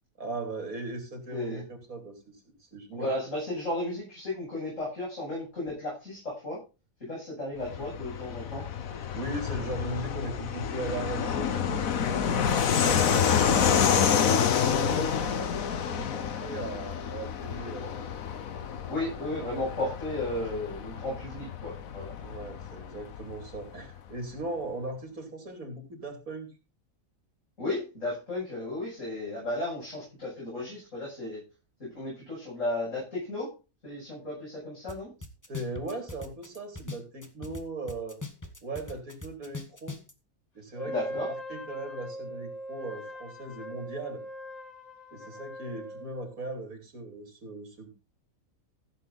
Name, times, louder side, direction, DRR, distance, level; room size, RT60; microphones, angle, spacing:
voice 1, 0.2-2.3 2.6-3.1 9.1-14.1 14.6-15.5 15.8-18.1 22.2-26.5 35.5-38.2 38.6-40.0 40.5-40.9 41.3-44.2 45.1-47.9, right 2 dB, 90° right, 4 dB, 3.6 m, -38 dB
voice 2, 1.3-1.6 2.9-6.6 7.0-8.7 18.9-22.1 27.6-31.4 31.8-33.5 33.8-35.1 40.9-41.3, left 2 dB, 65° left, -6 dB, 8.6 m, -34 dB
Fixed-wing aircraft airplane, 7.6-23.8, left 7 dB, 80° left, 1.5 m, -28 dB
sound 1, 34.9-35.0 35.2-37.6 37.9-40.1, left 3 dB, 15° left, 1.4 m, -40 dB
Wind instrument woodwind instrument, 40.7-46.3, equal, 30° left, 1.5 m, -40 dB
15.0 x 7.9 x 4.1 m, 0.30 s
omnidirectional pair, 1.4 m